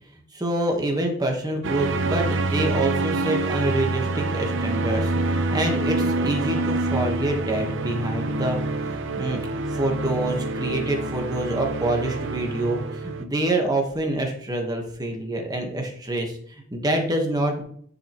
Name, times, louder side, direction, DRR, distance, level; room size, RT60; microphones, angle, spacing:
voice 1, 0.3-17.6, right 1 dB, 20° right, 2 dB, 1.3 m, -26 dB
sound 1, 1.6-13.2, right 2 dB, 65° right, 0.7 m, -26 dB
10.5 x 5.6 x 3.0 m, 0.63 s
head